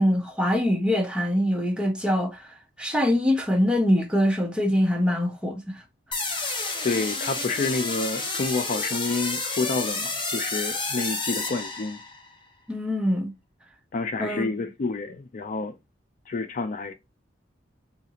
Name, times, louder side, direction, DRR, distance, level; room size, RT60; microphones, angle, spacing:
voice 1, 0.0-2.5 2.8-5.8 12.7-13.3 14.2-14.5, equal, 5° right, 0.6 m, -23 dB
sound 1, 6.1-12.3, left 3 dB, 25° left, 0.8 m, -30 dB
voice 2, 6.8-12.0 13.9-15.8 16.3-16.9, left 3 dB, 45° left, 0.4 m, -29 dB
3.9 x 2.5 x 2.7 m
head